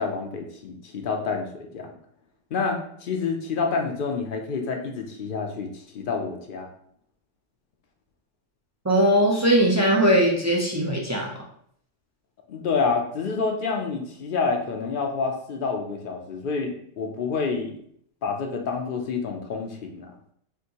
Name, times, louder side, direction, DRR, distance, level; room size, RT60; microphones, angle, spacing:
voice 1, 0.0-1.9 2.5-6.7 12.5-17.8 18.2-20.1, left 4 dB, 55° left, 3 dB, 0.6 m, -28 dB
voice 2, 8.8-11.4, right 1 dB, 30° right, -2 dB, 0.3 m, -20 dB
6.0 x 2.6 x 2.9 m, 0.66 s
omnidirectional pair, 1.5 m